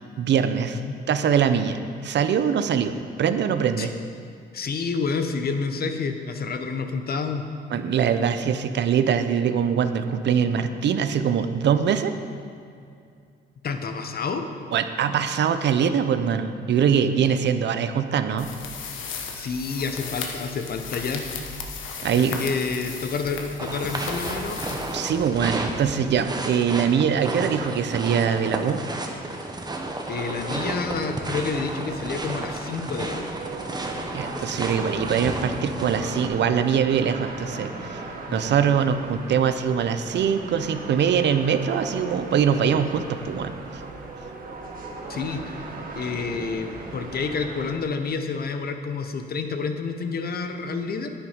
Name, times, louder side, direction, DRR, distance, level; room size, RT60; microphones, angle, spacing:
voice 1, 0.2-0.8 1.1-3.9 7.7-12.1 14.7-18.5 22.0-22.4 24.9-28.8 34.1-38.0 38.3-43.8, right 7 dB, 60° right, 9 dB, 0.7 m, -23 dB
voice 2, 4.5-7.4 13.6-14.5 19.3-21.3 22.2-24.8 30.1-33.3 38.3-38.5 45.1-45.6 46.0-51.1, left 4 dB, 50° left, 7 dB, 1.0 m, -29 dB
sound 1, 18.4-25.5, left 5 dB, 80° left, 1.3 m, -36 dB
sound 2, 23.6-36.3, right 2 dB, 20° right, 1.2 m, -32 dB
sound 3, 30.1-47.8, right 3 dB, 45° right, 1.5 m, -38 dB
9.9 x 8.9 x 5.1 m, 2.4 s
cardioid pair, 90°, 20 cm